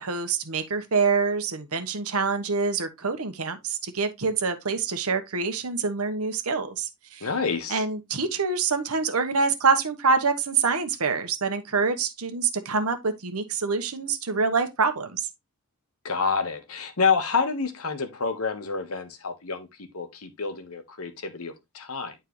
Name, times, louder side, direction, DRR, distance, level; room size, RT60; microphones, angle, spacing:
voice 1, 0.0-7.3 7.7-15.3, right 4 dB, 80° right, 1.1 m, -26 dB
voice 2, 7.2-7.8 16.0-19.7 19.9-22.1, left 5 dB, 75° left, 1.3 m, -28 dB
9.2 x 4.5 x 3.1 m
head